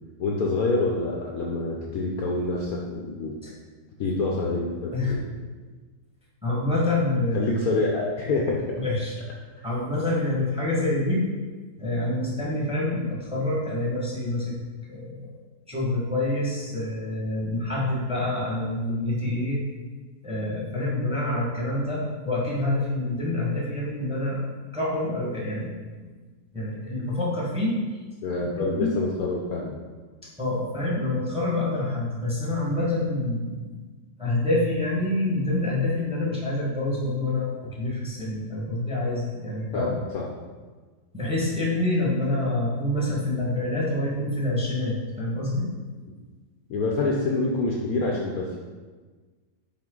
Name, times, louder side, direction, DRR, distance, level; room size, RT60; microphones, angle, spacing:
voice 1, 0.2-3.3 4.0-5.3 7.3-8.6 9.6-9.7 28.2-29.8 39.7-40.2 46.7-48.6, left 3 dB, 65° left, -2 dB, 1.0 m, -26 dB
voice 2, 6.4-7.5 8.8-9.1 9.6-11.3 11.8-14.6 14.9-15.2 15.7-19.6 20.2-24.4 24.7-25.7 26.5-27.8 28.5-28.9 30.4-33.7 34.2-39.9 41.1-45.7, left 2 dB, 5° right, -5 dB, 1.2 m, -27 dB
6.1 x 4.2 x 3.8 m, 1.4 s
omnidirectional pair, 1.9 m